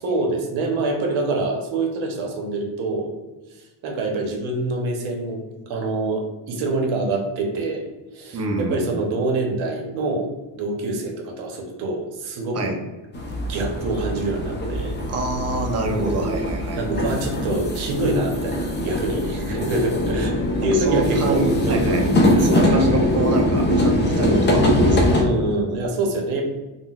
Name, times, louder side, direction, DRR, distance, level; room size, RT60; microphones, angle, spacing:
voice 1, 0.0-3.1 3.5-7.8 8.1-10.3 10.5-12.7 13.5-15.0 15.9-16.3 16.8-22.0 22.5-23.1 24.1-24.6 25.2-26.4, right 2 dB, 85° right, 1 dB, 0.8 m, -26 dB
voice 2, 8.3-8.9 12.5-12.8 15.1-16.8 20.6-22.1 22.4-25.2, right 2 dB, 35° right, 2 dB, 0.5 m, -26 dB
sound 1, 13.1-25.2, left 1 dB, 25° left, 0.4 m, -22 dB
3.7 x 2.0 x 2.3 m, 1.2 s
cardioid pair, 110°, 47 cm